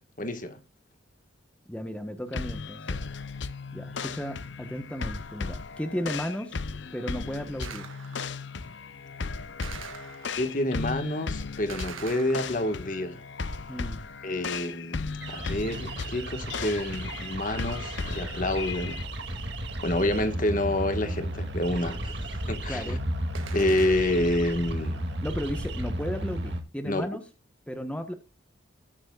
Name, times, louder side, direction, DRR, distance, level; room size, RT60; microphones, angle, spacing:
voice 1, 0.2-0.6 10.4-13.2 14.2-15.0 15.3-19.0 19.3-19.4 19.8-23.0 23.5-25.0 26.8-27.1, left 1 dB, 40° left, 1.5 m, -28 dB
voice 2, 1.7-3.0 3.7-6.6 6.9-7.9 13.7-14.0 22.7-23.0 25.2-27.2 27.7-28.1, equal, 5° left, 1.1 m, -34 dB
sound 1, 2.3-19.0, left 4 dB, 60° left, 0.7 m, -36 dB
Gunshot gunfire, 7.6-8.4 9.6-10.6 11.7-13.0 23.4-24.4, right 6 dB, 80° right, 1.7 m, -43 dB
sound 2, 15.2-26.6, right 1 dB, 55° right, 2.3 m, -34 dB
19.5 x 7.2 x 2.3 m
head